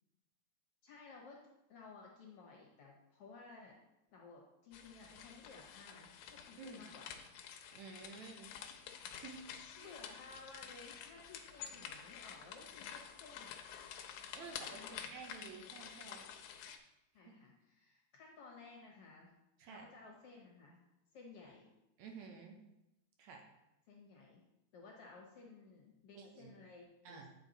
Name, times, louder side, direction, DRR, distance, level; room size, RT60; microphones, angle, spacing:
voice 1, 0.8-1.4 1.7-3.8 4.1-7.1 8.7-8.8 9.8-13.6 14.4-15.1 17.1-19.4 19.7-20.8 21.1-21.7 23.9-24.4 24.7-27.2, left 4 dB, 65° left, -1 dB, 1.7 m, -56 dB
sound 1, 4.7-16.8, left 8 dB, 80° left, 2.1 m, -50 dB
voice 2, 7.7-8.5 9.1-9.4 9.8-9.9 14.3-16.3 17.3-17.4 19.6-19.9 22.0-22.6 23.2-23.5 26.2-26.5 27.1-27.3, right 5 dB, 75° right, 2 dB, 2.0 m, -52 dB
9.0 x 4.4 x 4.0 m, 0.92 s
omnidirectional pair, 3.5 m